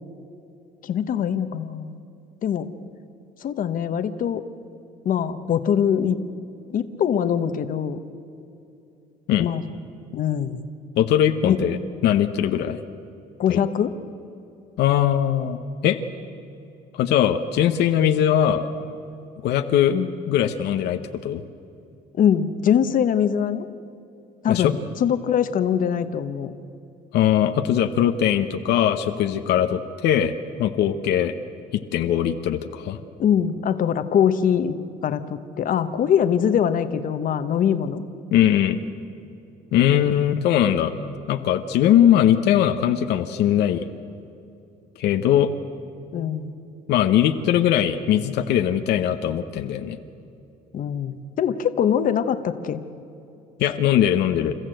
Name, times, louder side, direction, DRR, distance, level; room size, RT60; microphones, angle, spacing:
voice 1, 0.8-2.0 2.4-2.7 3.4-4.4 5.0-6.2 6.7-8.0 9.4-9.6 10.1-10.6 11.4-11.6 13.4-13.9 19.9-20.1 22.1-23.7 24.4-24.7 25.0-26.5 33.2-34.8 35.0-38.0 39.9-40.2 46.1-46.5 50.7-52.8, left 8 dB, 55° left, 10 dB, 1.1 m, -22 dB
voice 2, 11.0-11.8 12.0-12.8 13.5-13.6 14.8-16.0 16.9-18.7 19.4-20.0 20.3-21.4 24.5-24.7 27.1-30.3 30.6-31.3 31.7-33.0 38.3-38.8 39.7-40.9 41.3-43.8 45.0-45.5 46.9-50.0 53.6-54.5, left 10 dB, 80° left, 7 dB, 1.0 m, -20 dB
29.5 x 14.0 x 7.8 m, 2.8 s
cardioid pair, 110°, 17 cm